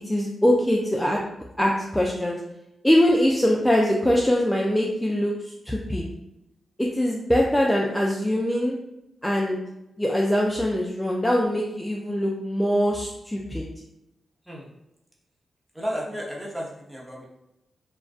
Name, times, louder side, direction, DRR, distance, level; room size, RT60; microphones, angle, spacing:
voice 1, 0.0-1.2 1.6-2.4 2.8-6.0 6.8-8.8 9.2-9.6 10.0-13.6, equal, 10° left, -2 dB, 0.3 m, -22 dB
voice 2, 15.7-17.3, equal, 10° right, -4 dB, 0.7 m, -33 dB
2.4 x 2.2 x 2.3 m, 0.90 s
cardioid pair, 75°, 0 cm